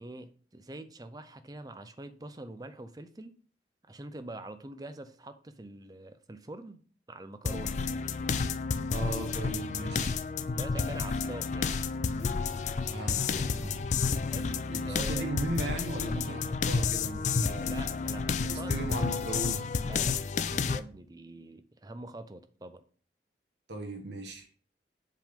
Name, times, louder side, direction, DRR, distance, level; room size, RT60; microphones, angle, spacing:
voice 1, 0.0-3.3 3.9-6.8 7.1-7.8 10.5-11.8 14.3-14.6 14.9-15.3 17.6-18.8 19.8-22.8, right 1 dB, 20° right, 0.5 m, -44 dB
sound 1, 7.5-20.8, left 5 dB, 40° left, 0.3 m, -31 dB
voice 2, 8.9-10.1 12.9-13.9 14.7-17.8 18.4-19.7 23.7-24.5, right 2 dB, 80° right, 1.3 m, -37 dB
7.4 x 3.7 x 5.2 m
head